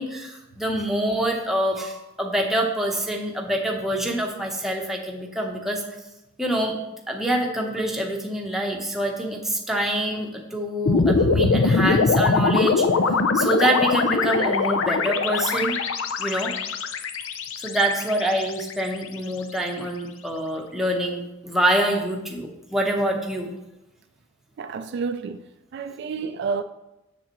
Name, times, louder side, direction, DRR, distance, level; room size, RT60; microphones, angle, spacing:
voice 1, 0.0-5.8 6.4-6.8 7.1-12.9 13.3-15.8 16.2-16.5 17.6-23.5, right 1 dB, ahead, 0.9 m, -25 dB
sound 1, 10.9-19.2, left 4 dB, 80° left, 0.5 m, -22 dB
voice 2, 24.6-25.4 25.7-26.6, right 5 dB, 55° right, 0.3 m, -29 dB
7.2 x 6.9 x 3.0 m
head